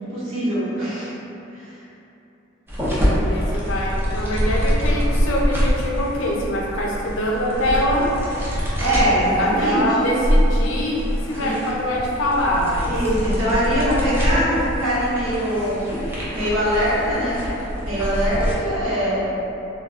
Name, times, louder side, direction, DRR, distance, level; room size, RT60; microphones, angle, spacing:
voice 1, 0.1-1.1 1.7-1.8 8.6-9.8 11.4-11.5 12.8-15.8 16.3-17.4 17.8-19.3, equal, 75° right, -10 dB, 1.0 m, -22 dB
sound 1, 2.7-18.5, equal, 10° right, 0.5 m, -24 dB
voice 2, 3.0-8.1 9.3-12.9, equal, 65° left, -2 dB, 0.5 m, -24 dB
3.2 x 2.2 x 2.4 m, 2.9 s
head